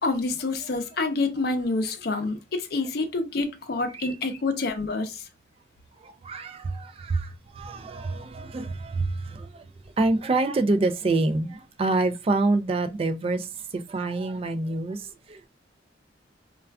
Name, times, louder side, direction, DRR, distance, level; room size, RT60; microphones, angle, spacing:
voice 1, 0.0-5.3, left 3 dB, 55° left, 0.5 m, -27 dB
voice 2, 6.0-9.7 10.0-13.5 13.7-15.5, right 2 dB, 30° right, 0.3 m, -27 dB
2.3 x 2.3 x 3.4 m
head